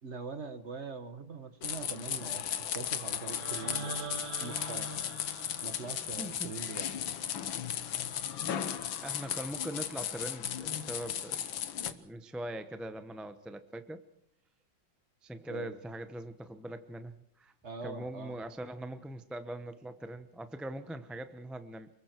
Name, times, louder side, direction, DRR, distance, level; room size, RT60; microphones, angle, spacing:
voice 1, 0.0-2.4 2.7-5.0 5.6-6.9 15.5-15.8 17.6-18.4, right 4 dB, 40° right, 9 dB, 1.6 m, -42 dB
sound 1, 1.6-11.9, left 9 dB, 85° left, 1.9 m, -36 dB
sound 2, 3.2-7.3, right 4 dB, 80° right, 2.2 m, -44 dB
voice 2, 6.2-6.5 8.7-11.5 11.8-14.0 15.2-17.5 17.8-21.9, right 1 dB, ahead, 9 dB, 0.5 m, -42 dB
29.0 x 21.5 x 4.6 m, 0.68 s
omnidirectional pair, 2.1 m